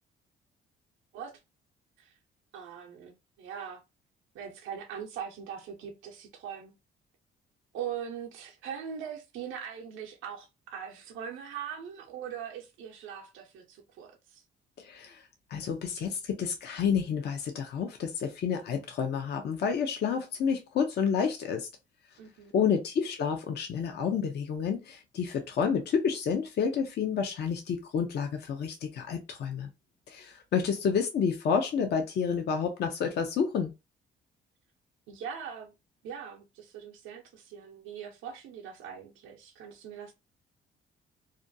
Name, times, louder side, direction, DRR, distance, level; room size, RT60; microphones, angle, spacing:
voice 1, 2.5-3.8 4.3-6.7 7.7-14.4 22.2-22.5 30.5-30.8 35.1-35.7 36.0-40.1, right 8 dB, 85° right, 0.6 m, -41 dB
voice 2, 14.8-21.7 22.5-29.7 30.1-33.7, left 6 dB, 55° left, 0.5 m, -29 dB
2.5 x 2.2 x 2.5 m
cardioid pair, 90°, 20 cm